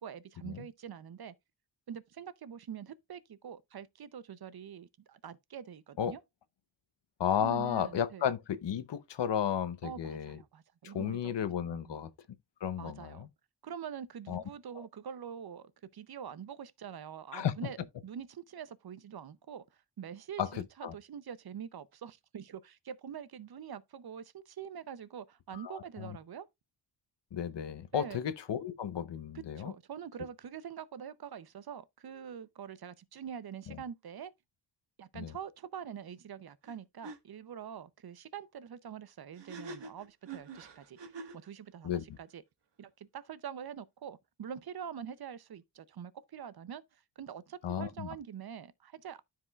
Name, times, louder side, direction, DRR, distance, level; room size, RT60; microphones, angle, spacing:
voice 1, 0.0-1.3 1.9-6.2 7.4-8.2 9.8-11.3 11.7-12.0 12.8-13.3 13.6-17.8 18.0-19.6 20.0-26.5 27.9-28.2 29.6-34.3 35.0-42.4 42.8-49.2, right 8 dB, 60° right, 0.6 m, -45 dB
voice 2, 7.2-10.4 10.8-12.1 12.6-13.3 14.3-14.4 14.8-14.9 17.3-17.7 20.4-20.9 25.5-26.2 27.3-29.7 33.7-33.8 35.1-35.3 41.8-42.0 47.6-48.1, left 9 dB, 80° left, 0.8 m, -34 dB
sound 1, 36.6-36.8 37.0-37.2 39.3-41.5, right 3 dB, 85° right, 1.5 m, -45 dB
13.0 x 4.8 x 2.3 m
wide cardioid pair, 145°, 42 cm